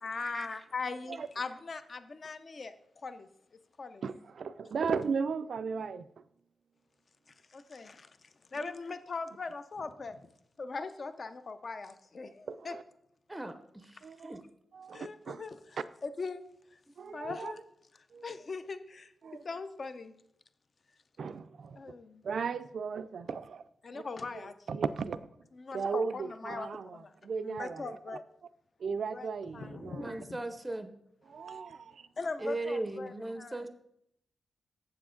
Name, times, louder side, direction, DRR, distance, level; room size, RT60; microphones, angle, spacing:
voice 1, 0.0-2.7 3.0-3.3 3.8-4.0 7.5-8.1 8.5-10.2 10.6-12.8 14.9-16.4 17.1-17.6 18.2-19.1 19.4-20.1 21.8-22.2 23.8-24.8 25.5-27.1 27.4-28.2 29.1-29.3 29.5-30.4 31.5-31.6 32.2-33.7, left 4 dB, 40° left, 0.5 m, -40 dB
voice 2, 4.0-6.1 8.6-8.7 12.5-12.8 14.0-14.4 14.7-15.4 17.0-17.5 18.1-18.3 19.2-19.4 21.2-21.8 22.2-23.6 23.9-24.0 24.7-25.2 25.7-28.0 28.8-30.1 31.2-32.1, right 5 dB, 60° right, 0.4 m, -36 dB
voice 3, 30.0-30.9 32.4-33.7, right 2 dB, 10° right, 0.6 m, -37 dB
7.7 x 7.1 x 3.8 m
wide cardioid pair, 140°, 0 cm